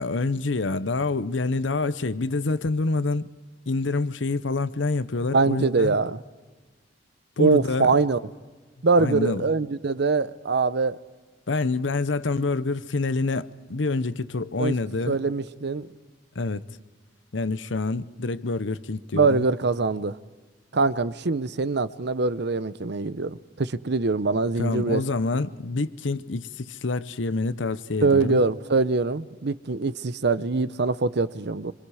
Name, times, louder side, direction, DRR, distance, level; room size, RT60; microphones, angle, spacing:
voice 1, 0.0-3.3 3.7-6.0 7.4-7.9 9.0-9.5 11.5-15.2 16.3-16.6 17.3-19.5 24.6-28.4, left 3 dB, 85° left, 0.8 m, -27 dB
voice 2, 5.3-6.2 7.4-8.2 8.8-11.0 14.6-14.7 15.1-15.9 19.1-20.2 20.7-25.0 28.0-31.7, right 4 dB, 65° right, 0.8 m, -23 dB
26.0 x 26.0 x 4.9 m
head